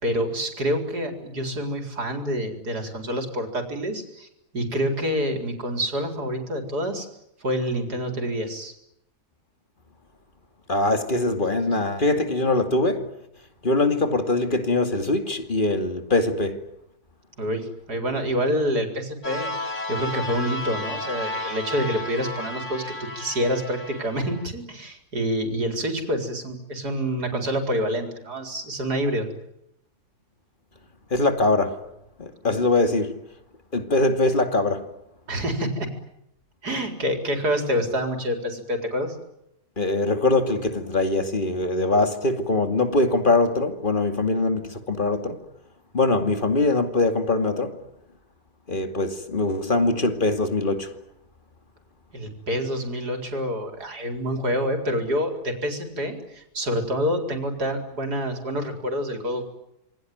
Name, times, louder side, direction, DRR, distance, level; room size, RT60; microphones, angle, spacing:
voice 1, 0.0-4.3 4.5-7.1 7.4-8.7 17.4-19.5 19.9-29.3 35.3-35.9 36.6-39.1 52.1-59.5, equal, 70° right, 5.0 m, -27 dB
voice 2, 10.7-13.0 13.6-16.6 31.1-31.8 32.2-33.1 33.7-34.9 39.8-45.4 45.9-47.8 48.7-50.9, left 2 dB, 30° left, 2.6 m, -22 dB
sound 1, 19.2-24.5, left 2 dB, 45° left, 2.5 m, -33 dB
27.5 x 22.5 x 9.4 m
omnidirectional pair, 1.7 m